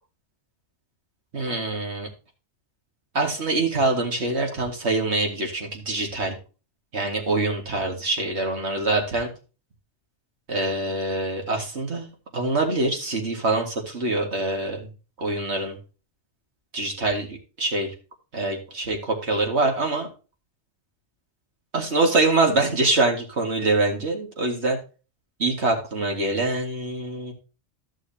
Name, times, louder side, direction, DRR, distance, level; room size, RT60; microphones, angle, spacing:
voice 1, 1.3-2.1 3.1-6.4 6.9-9.3 10.5-14.9 15.2-15.8 16.7-17.9 18.3-20.1 21.7-24.8 25.4-27.3, right 2 dB, 70° right, 1 dB, 2.3 m, -24 dB
14.0 x 6.3 x 2.8 m, 0.33 s
omnidirectional pair, 1.2 m